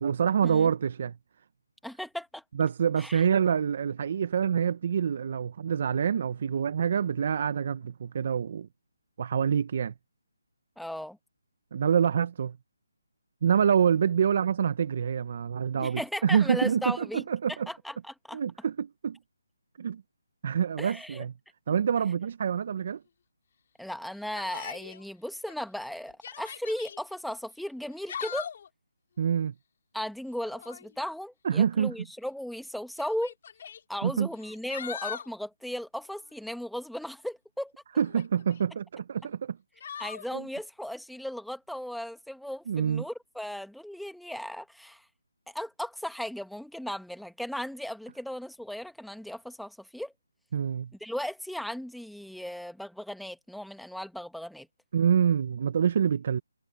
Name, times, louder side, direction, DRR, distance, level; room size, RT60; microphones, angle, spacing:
voice 1, 0.0-1.1 2.5-8.7 9.2-9.9 11.7-12.6 13.4-17.7 18.3-19.2 19.8-20.0 20.4-21.3 21.7-23.0 29.2-29.5 31.4-31.9 34.0-34.3 38.0-39.6 40.3-40.5 42.7-43.0 50.5-50.9 54.9-56.4, right 7 dB, 45° right, 1.2 m, -26 dB
voice 2, 1.8-2.4 3.0-3.2 10.8-11.2 15.8-17.2 17.5-18.4 20.8-21.2 21.7-21.8 23.8-28.5 29.9-33.3 33.9-37.7 40.0-45.0 45.5-50.1 51.0-54.7, equal, ahead, 1.4 m, -36 dB
Yell, 24.3-25.0 25.5-25.6 26.1-27.0 27.8-28.7 30.4-30.9 32.0-32.1 33.0-33.8 34.4-35.3 38.0-38.6 39.8-40.3, left 8 dB, 45° left, 3.1 m, -40 dB
hypercardioid pair, 160°, 0 cm